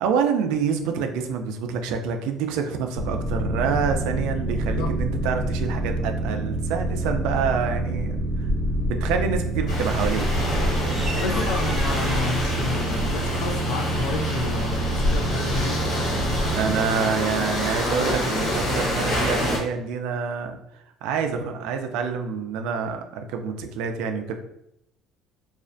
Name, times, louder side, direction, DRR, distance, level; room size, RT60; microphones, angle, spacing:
voice 1, 0.0-8.5 8.9-10.3 10.8-11.1 16.5-20.6 21.0-24.3, right 6 dB, 85° right, 5 dB, 0.3 m, -27 dB
Boat Water vehicle, 2.9-16.7, right 1 dB, 55° right, 0.7 m, -26 dB
voice 2, 4.5-5.3 11.1-15.9, left 3 dB, 85° left, 4 dB, 0.4 m, -31 dB
sound 1, 9.7-19.6, left 1 dB, 60° left, 1.3 m, -28 dB
sound 2, 9.9-13.2, equal, ahead, 0.5 m, -31 dB
2.4 x 2.1 x 2.5 m, 0.79 s
cardioid pair, 155°, 0 cm